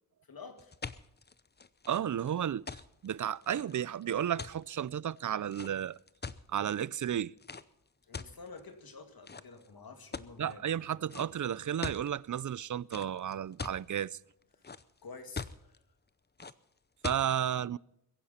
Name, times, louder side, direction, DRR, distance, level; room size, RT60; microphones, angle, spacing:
voice 1, 0.3-0.7 8.1-10.6 14.6-14.7 15.0-15.8, left 4 dB, 85° left, 2.4 m, -49 dB
sound 1, 0.6-6.7 7.4-7.6 8.1-8.8 9.3-9.7 10.1-10.5 11.1-11.3 11.6-12.1 12.9-13.8 14.3-15.0 15.4-15.8 16.4-16.5 17.0-17.2, left 4 dB, 30° left, 0.6 m, -42 dB
voice 2, 1.9-6.0 6.5-7.3 10.4-14.2 17.0-17.8, right 9 dB, 60° right, 0.4 m, -33 dB
22.5 x 11.0 x 4.2 m
wide cardioid pair, 110°, 35 cm